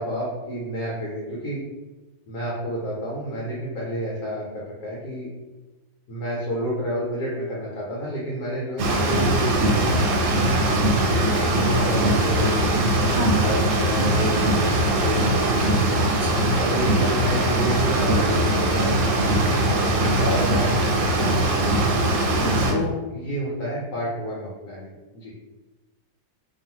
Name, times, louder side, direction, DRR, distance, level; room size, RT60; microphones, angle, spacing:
voice 1, 0.0-1.6 2.3-5.3 6.1-10.0 11.1-12.7 13.3-15.6 16.6-19.0 19.5-21.9 22.7-25.3, equal, 70° left, -5 dB, 1.2 m, -30 dB
sound 1, 8.8-22.7, right 1 dB, 90° right, 1.3 m, -21 dB
voice 2, 13.0-13.5 16.0-16.6 22.4-22.8, right 2 dB, 65° right, -5 dB, 0.6 m, -30 dB
2.9 x 2.4 x 2.8 m, 1.2 s
omnidirectional pair, 1.9 m